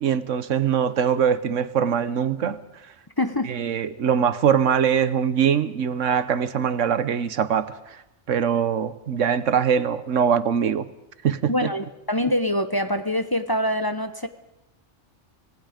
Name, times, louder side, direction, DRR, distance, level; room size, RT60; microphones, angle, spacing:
voice 1, 0.0-2.6 3.5-7.8 8.3-10.9 11.2-11.7, right 8 dB, 85° right, 13 dB, 1.3 m, -22 dB
voice 2, 3.2-3.5 11.5-14.3, left 1 dB, 20° left, 8 dB, 0.9 m, -24 dB
26.0 x 19.0 x 5.2 m, 0.91 s
omnidirectional pair, 1.3 m